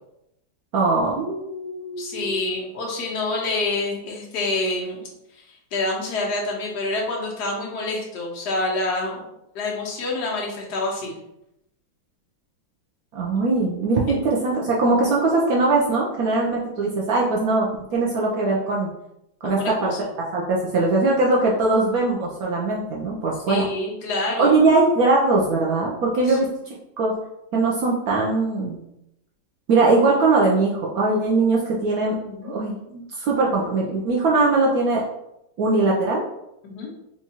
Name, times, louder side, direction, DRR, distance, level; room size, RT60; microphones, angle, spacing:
voice 1, 0.7-2.3 13.1-17.7 17.9-18.9 19.4-19.9 20.3-23.7 24.4-27.1 27.5-28.8 29.7-32.2 32.4-35.0 35.6-36.2, right 3 dB, 85° right, -3 dB, 0.7 m, -21 dB
voice 2, 2.0-5.1 5.3-5.4 5.7-9.3 9.5-11.1 19.4-20.0 23.5-24.5 26.3-26.4 32.2-32.6 36.6-36.9, left 2 dB, 60° left, -2 dB, 1.3 m, -27 dB
4.3 x 2.3 x 2.8 m, 0.84 s
omnidirectional pair, 2.2 m